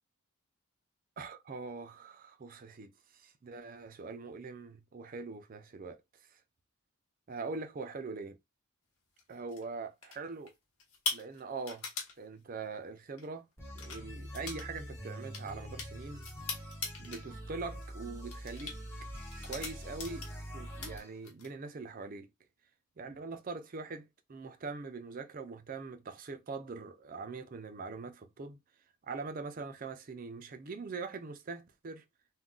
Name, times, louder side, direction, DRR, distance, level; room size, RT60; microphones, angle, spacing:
voice 1, 1.2-6.4 7.3-8.4 9.3-10.5 11.1-11.9 12.2-13.5 13.7-16.3 17.0-18.8 19.4-22.3 23.0-28.6 29.0-32.0, right 4 dB, 40° right, 0.4 m, -43 dB
sound 1, 9.2-9.6 10.0-10.5 10.8-12.1 13.1-13.3 13.7-14.0 14.3-14.7 14.9-17.2 17.6-17.9 18.3-18.7 19.3-20.4 20.7-21.5, left 4 dB, 90° left, 1.1 m, -40 dB
sound 2, 13.6-21.1, equal, 10° left, 0.9 m, -45 dB
2.3 x 2.2 x 3.7 m
head